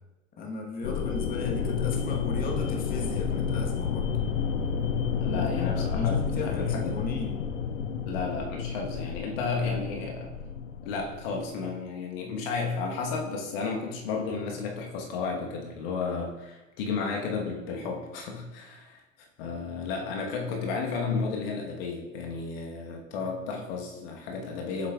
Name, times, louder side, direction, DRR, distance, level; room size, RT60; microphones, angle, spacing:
voice 1, 0.4-4.1 5.2-7.5, left 2 dB, 20° left, 0 dB, 1.3 m, -36 dB
sound 1, 0.8-11.4, left 6 dB, 65° left, 0.7 m, -30 dB
voice 2, 5.2-7.1 8.1-10.3 10.8-19.0 19.4-24.9, left 4 dB, 45° left, 1 dB, 1.3 m, -33 dB
8.3 x 7.6 x 2.4 m, 1.0 s
figure-of-eight pair, 90°, 39 cm